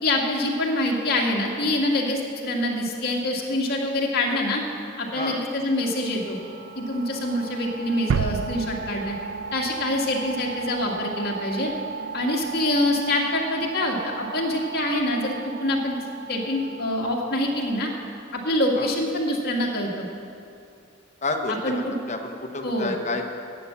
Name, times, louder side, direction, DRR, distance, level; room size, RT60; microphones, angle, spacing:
voice 1, 0.0-4.6 5.0-6.4 6.7-9.1 9.5-11.7 12.1-16.0 16.3-17.9 18.3-20.1 21.6-21.9 22.6-22.9, left 1 dB, 50° left, -1 dB, 1.8 m, -25 dB
sound 1, 5.0-18.4, right 5 dB, 45° right, 1.5 m, -37 dB
sound 2, 8.1-10.8, right 6 dB, 85° right, 0.4 m, -30 dB
voice 2, 21.2-23.3, left 2 dB, 35° left, 3 dB, 1.0 m, -30 dB
11.5 x 7.3 x 8.3 m, 2.5 s
head